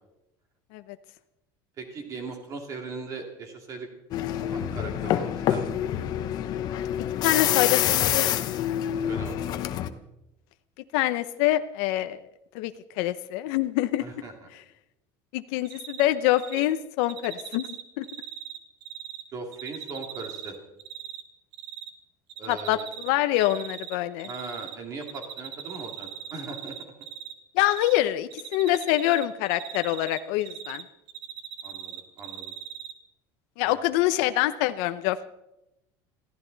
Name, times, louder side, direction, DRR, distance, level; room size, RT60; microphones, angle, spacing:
voice 1, 1.8-3.9 4.5-5.8 9.1-9.6 14.0-14.5 19.3-20.6 22.4-22.9 24.3-26.8 31.6-32.5 33.6-33.9, right 3 dB, 35° right, 3 dB, 2.4 m, -39 dB
sound 1, 4.1-9.9, left 11 dB, 45° left, 0.9 m, -26 dB
voice 2, 7.2-8.5 10.9-12.2 12.5-14.1 15.3-18.0 22.5-24.3 27.5-30.8 33.6-35.3, left 15 dB, 75° left, 11 dB, 0.7 m, -25 dB
Cricket, 15.6-16.1 16.3-16.6 17.0-19.2 19.5-21.2 21.5-21.9 22.3-23.1 23.4-24.8 25.0-27.3 27.6-28.0 28.3-30.8 31.1-32.9, right 10 dB, 55° right, 1.8 m, -39 dB
22.0 x 15.5 x 4.0 m, 0.88 s
cardioid pair, 170°, 10 cm